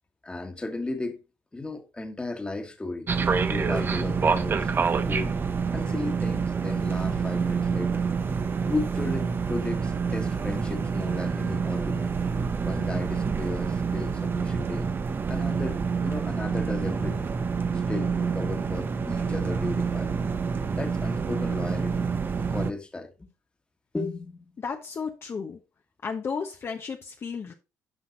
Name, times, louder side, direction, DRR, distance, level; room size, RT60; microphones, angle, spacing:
voice 1, 0.2-1.2 1.5-3.1 3.4-4.7 5.1-5.3 5.7-8.1 8.4-12.1 12.6-14.9 15.3-17.3 17.9-20.2 20.7-22.1 22.4-23.1 23.9-24.5, left 2 dB, 15° left, 1.8 m, -35 dB
sound 1, 3.1-22.7, right 5 dB, 35° right, 0.9 m, -27 dB
voice 2, 24.6-25.6 26.0-27.5, left 5 dB, 40° left, 1.2 m, -33 dB
10.0 x 5.7 x 4.1 m
cardioid pair, 105°, 6 cm